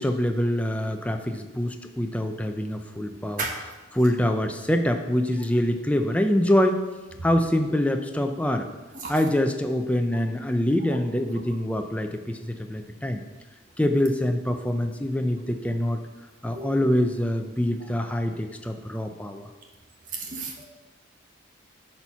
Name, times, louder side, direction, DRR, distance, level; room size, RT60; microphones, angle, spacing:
voice 1, 0.0-6.9 7.2-8.7 9.1-13.2 13.8-16.0 16.4-19.5, left 1 dB, 5° left, 5 dB, 0.5 m, -25 dB
voice 2, 20.1-20.6, right 3 dB, 40° right, 1 dB, 1.2 m, -32 dB
11.5 x 4.5 x 5.7 m, 1.2 s
head